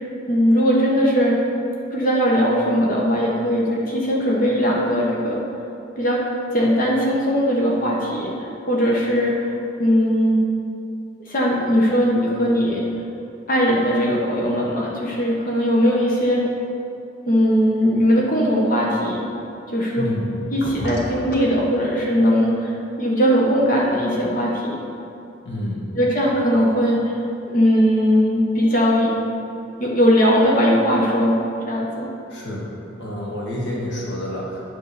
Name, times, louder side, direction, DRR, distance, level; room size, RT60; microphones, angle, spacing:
voice 1, 0.3-1.3 1.9-5.4 6.0-6.2 6.5-9.5 9.8-10.4 11.3-12.8 13.5-16.4 17.3-19.2 19.7-20.1 20.5-24.8 25.9-27.1 27.5-29.1 29.8-31.3 31.7-32.1, equal, 45° left, -3 dB, 1.1 m, -19 dB
voice 2, 20.0-20.9 25.4-25.8 32.3-32.7 33.0-34.7, left 1 dB, 65° left, -4 dB, 1.7 m, -28 dB
9.5 x 3.6 x 6.8 m, 2.7 s
head